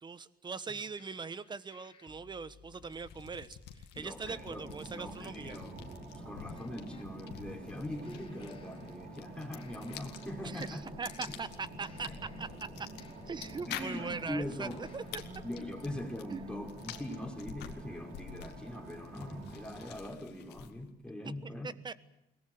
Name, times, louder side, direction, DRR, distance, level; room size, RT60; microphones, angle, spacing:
voice 1, 0.0-3.6 3.9-5.6 10.4-12.1 12.4-12.5 12.8-12.9 13.3-15.2 16.3-16.4 21.4-21.9, right 5 dB, 25° right, 15 dB, 1.2 m, -41 dB
sound 1, 1.0-7.1 8.0-9.3 9.5-10.7 11.0-14.5 14.8-15.5, left 5 dB, 30° left, 2.6 m, -60 dB
sound 2, 2.7-20.9, left 10 dB, 85° left, 2.1 m, -49 dB
voice 2, 4.0-10.8 11.3-11.4 12.1-12.2 13.7-14.9 15.4-21.7, left 1 dB, 5° left, 2 dB, 5.1 m, -42 dB
sound 3, 4.2-19.9, right 2 dB, 65° right, 5.1 m, -48 dB
22.5 x 19.5 x 9.4 m, 0.86 s
cardioid pair, 110°, 17 cm